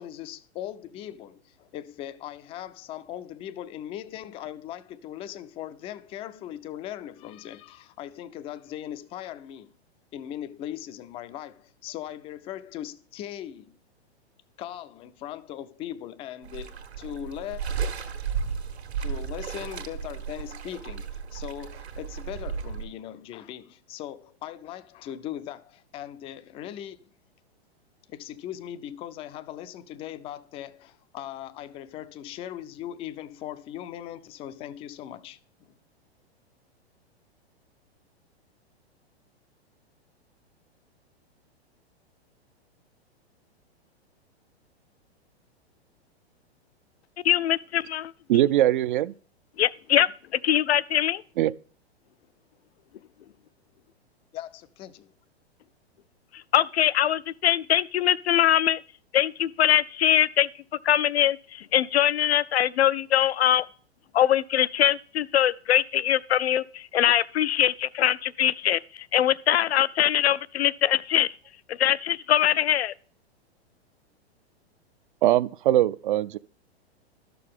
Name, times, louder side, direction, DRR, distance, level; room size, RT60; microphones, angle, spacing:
voice 1, 0.0-9.7 10.1-13.8 14.6-17.6 19.0-27.1 28.1-35.4 54.3-55.1, left 11 dB, 20° left, 0.4 m, -39 dB
sound 1, 16.4-22.8, right 6 dB, 75° right, 1.6 m, -34 dB
voice 2, 47.2-48.1 49.6-51.2 56.5-58.8 59.1-60.5 60.8-63.6 64.1-71.3 71.7-72.9, left 11 dB, 70° left, 0.5 m, -22 dB
voice 3, 48.3-49.1 51.4-51.5 75.2-76.4, right 13 dB, 50° right, 0.5 m, -21 dB
12.0 x 6.8 x 3.6 m
figure-of-eight pair, 105°, 32 cm